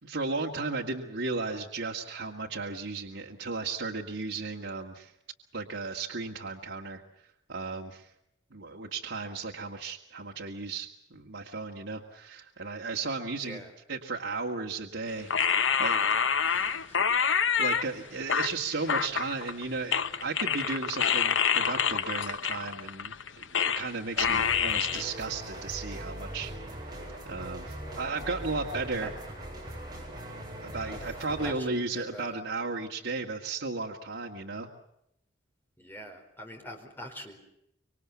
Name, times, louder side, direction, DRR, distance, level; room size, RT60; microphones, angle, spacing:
voice 1, 0.0-5.1 5.5-7.0 7.5-8.1 8.5-13.6 13.9-16.1 16.5-16.8 17.6-26.5 27.3-29.1 30.6-34.7, right 3 dB, 75° right, -1 dB, 2.1 m, -35 dB
voice 2, 13.4-13.7 16.4-17.0 17.9-18.5 27.8-28.2 29.0-29.1 30.9-32.4 35.8-37.4, equal, 10° left, 4 dB, 4.1 m, -45 dB
sound 1, 15.3-17.8 18.3-19.6 19.9-23.9 24.2-25.0, left 7 dB, 80° left, 1.1 m, -27 dB
sound 2, 24.1-31.5, right 1 dB, 20° right, 7.9 m, -40 dB
26.0 x 24.5 x 7.1 m, 0.79 s
head